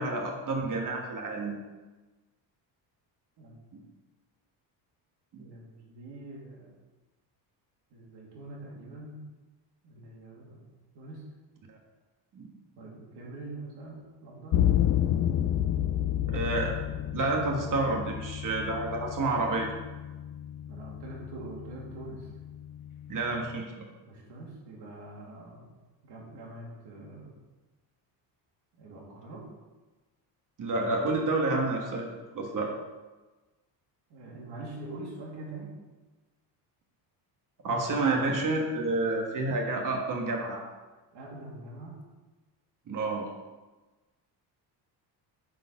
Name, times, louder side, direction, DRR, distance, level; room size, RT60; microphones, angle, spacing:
voice 1, 0.0-1.6 3.7-3.8 5.3-5.4 11.7-11.8 12.3-12.5 16.3-16.7 17.1-19.7 23.1-23.8 30.6-32.0 32.3-32.7 37.6-40.6 42.9-43.3, right 2 dB, 45° right, 1 dB, 1.4 m, -29 dB
voice 2, 5.4-6.8 7.9-9.2 9.8-11.2 12.8-14.6 20.7-22.3 24.1-25.7 26.0-27.4 28.8-29.4 34.1-35.7 41.1-42.0, right 2 dB, 65° right, -3 dB, 2.7 m, -44 dB
sound 1, 14.5-23.6, left 11 dB, 45° left, 0.5 m, -31 dB
8.2 x 4.5 x 5.8 m, 1.2 s
cardioid pair, 135°, 44 cm